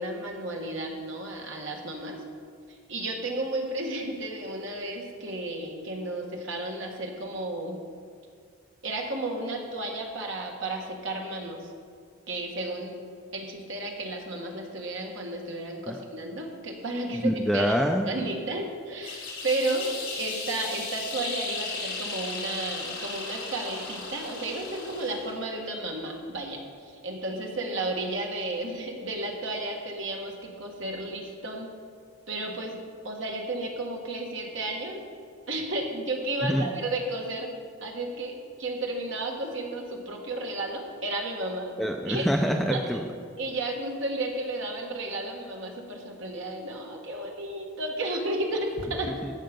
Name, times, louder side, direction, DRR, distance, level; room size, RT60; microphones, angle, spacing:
voice 1, 0.0-2.2 2.9-7.8 8.8-11.6 12.3-13.0 13.3-17.7 18.1-31.7 32.3-32.8 33.0-35.0 35.5-37.5 37.8-41.7 42.1-42.3 42.7-42.8 43.4-49.1, right 2 dB, 55° right, 1 dB, 1.6 m, -33 dB
voice 2, 17.1-18.1 36.4-36.7 41.8-43.0 49.2-49.3, equal, ahead, 2 dB, 0.4 m, -26 dB
sound 1, 19.0-25.4, left 3 dB, 70° left, 3.3 m, -36 dB
15.5 x 5.6 x 5.2 m, 2.2 s
head